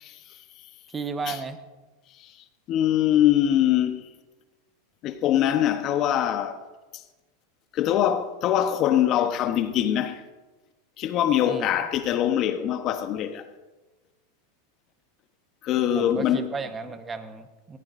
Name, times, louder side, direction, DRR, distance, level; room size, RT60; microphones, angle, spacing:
voice 1, 0.9-1.6 11.4-11.7 15.9-17.8, right 4 dB, 20° right, 1.2 m, -33 dB
voice 2, 2.7-4.0 5.0-6.6 7.7-10.2 11.0-13.5 15.6-16.5, left 11 dB, 45° left, 1.0 m, -23 dB
18.0 x 15.5 x 2.6 m
hypercardioid pair, 110°, 0 cm